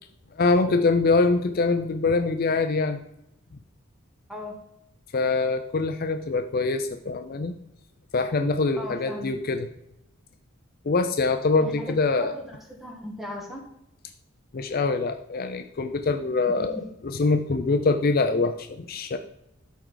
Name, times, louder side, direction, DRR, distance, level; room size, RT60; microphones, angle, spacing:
voice 1, 0.3-3.0 5.1-7.5 8.1-9.7 10.8-12.3 14.5-19.2, left 3 dB, 45° left, 8 dB, 0.5 m, -24 dB
voice 2, 8.8-9.3 11.6-13.6 16.5-16.8, left 1 dB, ahead, 1 dB, 1.5 m, -38 dB
12.5 x 4.7 x 3.9 m, 0.83 s
head